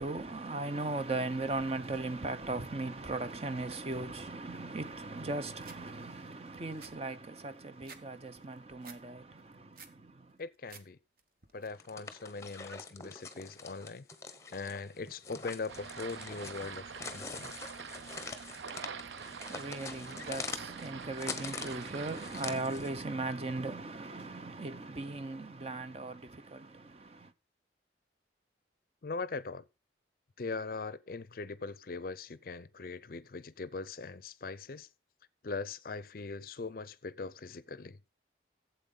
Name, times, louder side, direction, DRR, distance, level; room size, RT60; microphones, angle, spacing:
voice 1, 0.0-10.4 18.7-27.3, right 2 dB, 35° right, 0.6 m, -38 dB
sound 1, 5.6-5.8 6.3-6.4 6.6-8.0 8.4-9.0 9.4-10.0 10.4-10.8 11.2-11.7, right 5 dB, 50° right, 1.0 m, -53 dB
voice 2, 10.4-11.0 11.5-14.1 14.5-17.5 29.0-29.6 30.4-34.9 35.4-38.0, left 4 dB, 50° left, 0.5 m, -41 dB
sound 2, 11.7-23.0, left 4 dB, 15° left, 0.9 m, -45 dB
sound 3, 15.7-22.6, right 6 dB, 80° right, 0.5 m, -46 dB
12.5 x 7.8 x 3.9 m
head